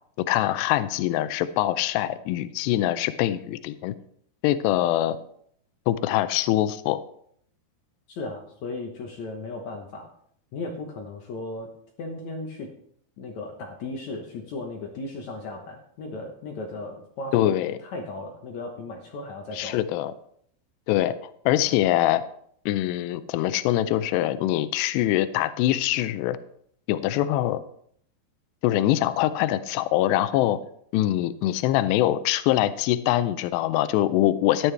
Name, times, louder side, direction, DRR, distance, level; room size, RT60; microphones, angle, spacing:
voice 1, 0.3-3.9 4.4-5.2 5.9-7.0 17.3-17.8 19.5-20.1 20.9-21.2 21.5-22.2 22.7-26.4 26.9-27.6 28.6-30.6 30.9-34.7, left 13 dB, 85° left, 13 dB, 2.7 m, -23 dB
voice 2, 8.1-10.1 10.5-11.7 12.0-12.7 13.2-19.8, left 2 dB, 65° left, 1 dB, 1.8 m, -36 dB
14.0 x 10.5 x 3.4 m, 0.66 s
omnidirectional pair, 4.9 m